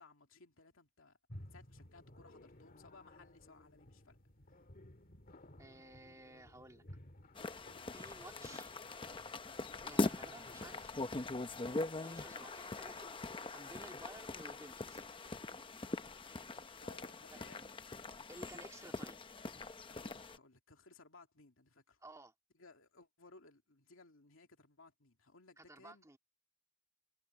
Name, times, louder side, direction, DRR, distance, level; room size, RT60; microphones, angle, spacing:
voice 1, 0.0-4.2 4.5-4.6 16.8-18.0 19.9-22.0 22.5-26.1, left 3 dB, 75° left, 2.7 m, -61 dB
sound 1, 1.3-11.4, left 1 dB, 45° left, 2.0 m, -57 dB
voice 2, 5.6-6.8 7.9-8.7 9.7-11.0 11.7-13.1 13.5-15.0 17.3-17.7 18.3-19.2 22.0-22.3 25.6-26.2, right 2 dB, 15° right, 2.3 m, -55 dB
sound 2, 7.3-20.4, left 2 dB, 25° left, 0.7 m, -42 dB
head